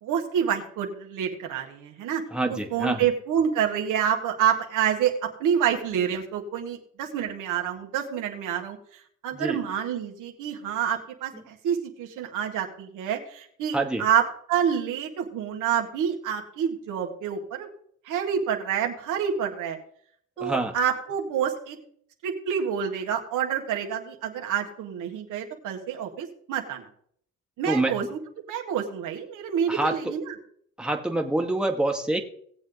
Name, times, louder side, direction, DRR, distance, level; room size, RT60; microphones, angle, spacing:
voice 1, 0.0-8.8 9.2-14.2 14.5-17.7 18.1-19.8 20.4-21.8 22.2-26.9 27.6-28.2 28.5-30.3, right 8 dB, 90° right, 2 dB, 1.9 m, -28 dB
voice 2, 2.3-3.0 9.3-9.6 13.7-14.0 20.4-20.7 27.7-27.9 29.7-30.1 30.8-32.2, right 2 dB, 5° right, 2 dB, 1.5 m, -26 dB
18.0 x 7.7 x 3.9 m, 0.64 s
cardioid pair, 90°, 30 cm